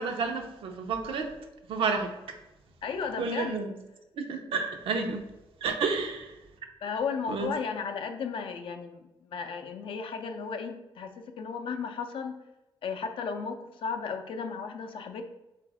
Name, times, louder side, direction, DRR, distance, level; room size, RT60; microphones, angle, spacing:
voice 1, 0.0-1.3 1.7-2.4 3.2-3.7 4.2-5.2 5.6-6.4 7.3-7.5, right 4 dB, 85° right, 0.6 m, -31 dB
voice 2, 2.8-3.6 6.8-12.4 12.8-15.2, left 5 dB, 75° left, 0.5 m, -34 dB
4.0 x 2.5 x 4.7 m
wide cardioid pair, 135°, 9 cm